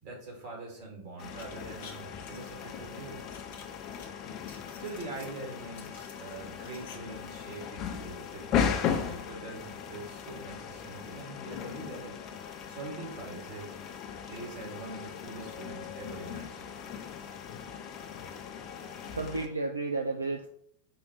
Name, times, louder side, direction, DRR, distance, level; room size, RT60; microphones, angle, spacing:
voice 1, 0.0-3.2 4.8-12.2 12.7-13.8 14.3-16.7 17.7-17.8, right 3 dB, 45° right, -1 dB, 1.9 m, -43 dB
sound 1, 1.2-19.5, left 7 dB, 35° left, 0.6 m, -37 dB
sound 2, 1.3-2.5 3.3-4.1 4.4-5.3 5.7-7.0 7.2-7.3, left 6 dB, 55° left, 0.9 m, -51 dB
voice 2, 19.0-20.5, right 3 dB, 80° right, 4 dB, 0.3 m, -32 dB
4.7 x 2.5 x 4.3 m, 0.66 s
figure-of-eight pair, 90°, 0 cm